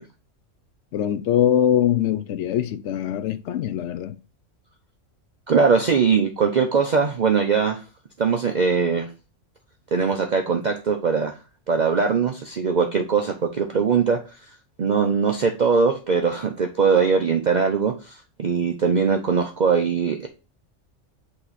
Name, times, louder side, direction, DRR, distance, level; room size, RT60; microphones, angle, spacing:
voice 1, 0.9-4.2, left 10 dB, 70° left, 0.9 m, -22 dB
voice 2, 5.5-7.8 8.2-9.1 9.9-11.4 11.7-14.4 14.8-20.3, right 5 dB, 45° right, 0.6 m, -21 dB
8.3 x 2.9 x 4.1 m
omnidirectional pair, 1.3 m